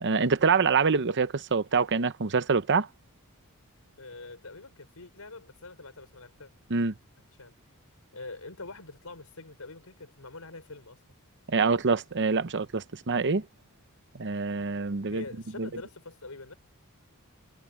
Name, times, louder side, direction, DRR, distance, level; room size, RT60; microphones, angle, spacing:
voice 1, 0.0-2.9 6.7-6.9 11.5-13.4 14.1-15.2 15.6-15.7, right 4 dB, 55° right, 0.8 m, -25 dB
voice 2, 4.0-6.5 7.4-7.5 8.1-11.0 15.1-16.5, left 3 dB, 75° left, 4.8 m, -44 dB
head